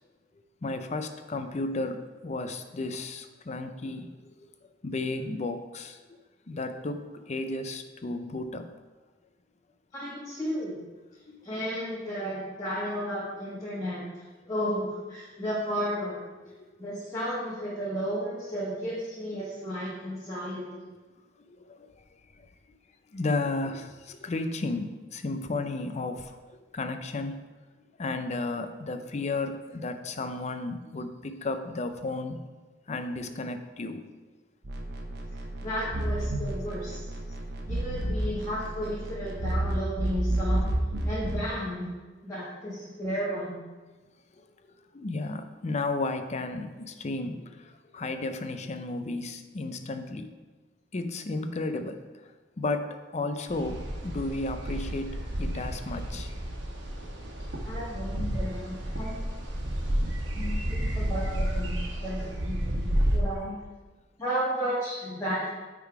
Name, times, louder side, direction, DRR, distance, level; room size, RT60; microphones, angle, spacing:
voice 1, 0.6-4.5 4.8-6.0 6.5-8.7 11.3-11.5 15.3-15.4 16.6-16.7 21.5-21.9 23.1-27.4 28.0-32.4 32.9-34.1 44.4-44.5 44.9-50.3 50.9-56.3, left 2 dB, 40° left, 8 dB, 0.5 m, -33 dB
voice 2, 9.9-10.8 11.4-14.0 14.5-16.2 16.8-20.8 35.6-37.0 37.7-40.7 41.0-41.9 42.2-43.6 57.6-59.5 60.3-63.6 64.2-65.5, equal, 20° left, -9 dB, 1.6 m, -33 dB
sound 1, 34.6-41.5, right 1 dB, 60° right, 1.0 m, -31 dB
sound 2, 53.5-63.2, equal, 90° right, 1.3 m, -31 dB
9.0 x 3.8 x 4.7 m, 1.3 s
head